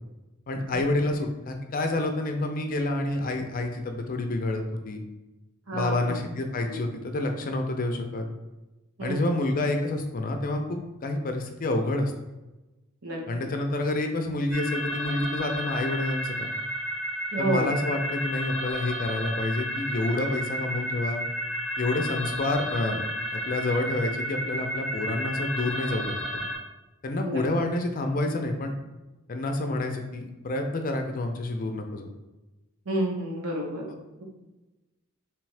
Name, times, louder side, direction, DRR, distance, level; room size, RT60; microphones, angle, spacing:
voice 1, 0.5-5.0 5.7-8.3 9.0-12.1 13.3-16.5 17.4-21.2 21.8-23.0 23.3-26.4 27.0-28.8 29.3-32.1, left 2 dB, 40° left, 4 dB, 0.5 m, -28 dB
voice 2, 5.7-6.2 6.7-6.8 9.0-9.2 13.0-13.2 17.3-17.7 27.2-27.4 32.9-33.8, right 1 dB, 85° right, -1 dB, 1.0 m, -29 dB
sound 1, 14.5-26.6, equal, 60° right, 1.4 m, -32 dB
3.6 x 3.3 x 3.2 m, 1.1 s
head